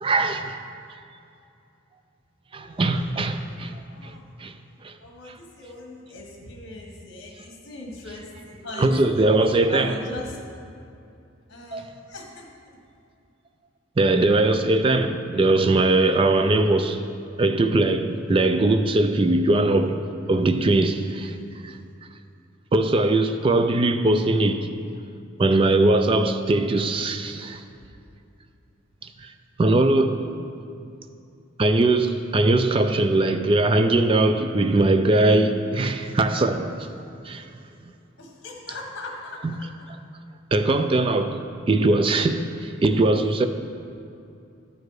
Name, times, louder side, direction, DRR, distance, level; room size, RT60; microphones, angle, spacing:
voice 1, 0.0-0.5 2.5-4.1 4.4-4.5 4.8-4.9 8.8-10.0 11.7-11.9 14.0-17.0 17.4-20.0 20.3-21.4 21.6-21.7 22.7-24.7 25.4-27.6 29.6-30.3 31.6-36.9 37.3-37.4 39.4-39.5 40.5-41.4 41.7-43.5, right 2 dB, 25° right, 0.3 m, -21 dB
voice 2, 2.5-2.8 3.9-4.2 5.0-9.2 9.7-10.4 11.5-12.5 38.2-39.4 39.8-39.9 43.2-43.5, left 2 dB, 55° left, 1.4 m, -39 dB
11.0 x 4.8 x 4.7 m
head